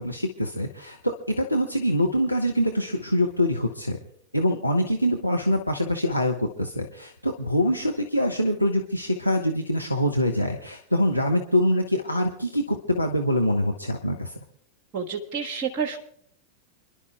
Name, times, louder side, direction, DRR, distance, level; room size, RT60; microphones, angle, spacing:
voice 1, 0.0-4.0 4.3-14.3, equal, 90° left, 1 dB, 1.0 m, -24 dB
voice 2, 14.9-16.0, right 6 dB, 35° right, 3 dB, 1.5 m, -29 dB
29.0 x 11.5 x 2.3 m, 0.67 s
figure-of-eight pair, 90°, 0 cm